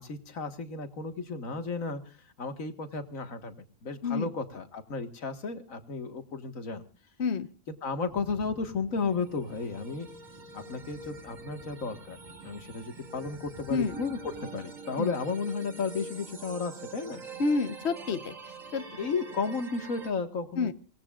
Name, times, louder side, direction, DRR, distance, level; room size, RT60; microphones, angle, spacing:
voice 1, 0.0-3.5 3.8-6.8 7.8-10.1 10.5-12.2 12.4-17.2 18.1-18.2 19.0-20.7, left 4 dB, 85° left, 8 dB, 2.1 m, -33 dB
voice 2, 7.2-7.5 13.7-14.0 15.0-15.1 17.4-18.3 18.7-18.9 20.6-20.7, left 4 dB, 60° left, 11 dB, 1.3 m, -28 dB
sound 1, 8.1-14.5, right 1 dB, 10° right, 6.8 m, -53 dB
sound 2, 9.1-20.1, right 3 dB, 85° right, 2.7 m, -45 dB
27.5 x 18.5 x 2.4 m, 0.36 s
omnidirectional pair, 1.3 m